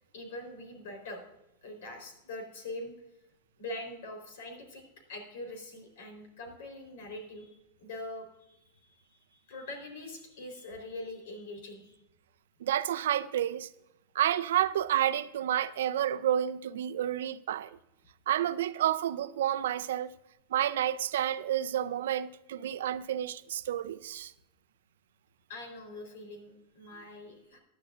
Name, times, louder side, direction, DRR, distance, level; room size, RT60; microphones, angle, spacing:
voice 1, 0.1-1.2 1.6-2.9 3.6-4.8 5.1-7.5 7.8-12.0 25.5-27.6, left 1 dB, 70° left, 3.8 m, -43 dB
voice 2, 12.6-13.7 14.1-17.8 18.3-20.1 20.5-24.3, right 11 dB, 85° right, 0.5 m, -30 dB
15.5 x 10.5 x 2.5 m
supercardioid pair, 150°, 0 cm